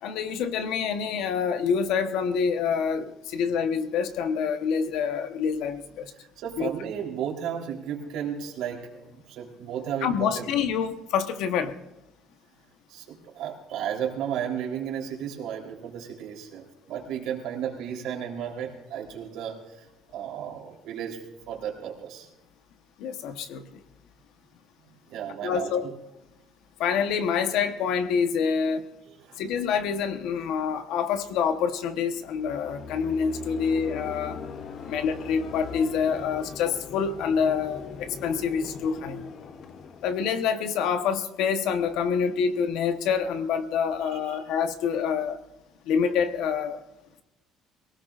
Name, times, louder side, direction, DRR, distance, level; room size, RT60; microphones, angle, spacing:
voice 1, 0.0-6.1 6.6-6.7 10.0-11.8 23.0-23.8 25.4-25.8 26.8-28.9 29.4-34.4 34.9-39.2 40.0-45.4 45.8-46.8, left 6 dB, 65° left, 9 dB, 1.1 m, -27 dB
voice 2, 6.2-10.5 12.9-19.9 20.1-21.2 21.5-22.3 25.1-25.9 29.1-29.4 44.0-44.4, right 9 dB, 65° right, 0 dB, 3.6 m, -34 dB
sound 1, 32.1-41.2, left 6 dB, 40° left, 0.7 m, -40 dB
23.0 x 17.5 x 2.5 m, 0.95 s
cardioid pair, 170°, 0 cm